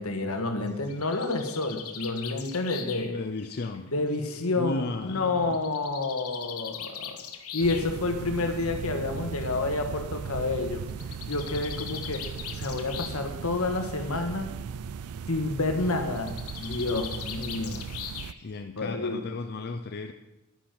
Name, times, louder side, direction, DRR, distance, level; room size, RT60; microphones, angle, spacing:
voice 1, 0.0-3.2 3.9-7.2 7.5-10.8 11.3-14.5 15.3-17.8 18.8-19.2, left 3 dB, 70° left, 6 dB, 1.6 m, -29 dB
Bird, 0.7-4.4 5.5-7.9 9.0-9.1 9.4-9.5 9.7-9.8 10.9-13.3 13.6-14.1 16.1-18.6, left 8 dB, 90° left, 1.4 m, -40 dB
voice 2, 3.0-3.9 4.6-5.6 18.4-20.1, left 3 dB, 45° left, 6 dB, 0.6 m, -35 dB
sound 1, 7.6-18.3, right 6 dB, 75° right, 0.4 m, -38 dB
11.0 x 10.0 x 6.0 m, 1.0 s
head